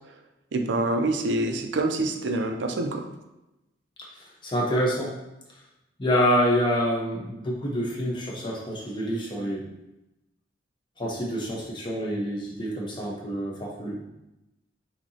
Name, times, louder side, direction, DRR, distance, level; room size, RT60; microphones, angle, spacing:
voice 1, 0.5-3.0, right 2 dB, 85° right, 6 dB, 0.5 m, -26 dB
voice 2, 4.4-5.1 6.0-9.7 11.0-14.0, equal, 25° left, -3 dB, 0.9 m, -27 dB
6.1 x 2.9 x 2.8 m, 0.95 s
head